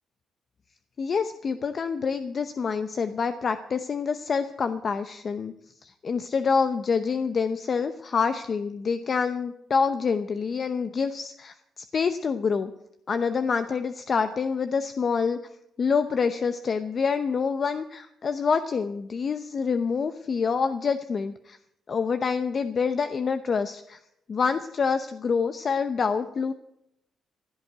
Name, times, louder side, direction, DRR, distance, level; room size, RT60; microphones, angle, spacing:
voice 1, 1.0-5.5 5.8-12.7 13.1-15.4 15.8-21.6 21.9-24.0 24.3-26.5, left 5 dB, 45° left, 9 dB, 0.8 m, -27 dB
15.5 x 8.6 x 8.0 m, 0.79 s
cardioid pair, 90°, 0 cm